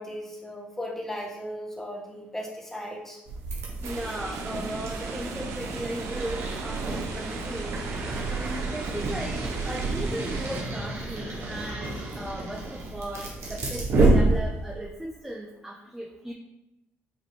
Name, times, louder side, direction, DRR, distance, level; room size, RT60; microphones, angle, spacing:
voice 1, 0.0-3.2, equal, 10° left, -1 dB, 0.9 m, -36 dB
sound 1, 3.3-14.8, right 2 dB, 65° right, 1.1 m, -29 dB
voice 2, 3.8-7.8 8.3-16.3, right 1 dB, 10° right, -2 dB, 0.5 m, -37 dB
sound 2, 3.8-10.6, right 4 dB, 90° right, 0.5 m, -39 dB
5.1 x 2.6 x 3.2 m, 0.87 s
cardioid pair, 90°, 5 cm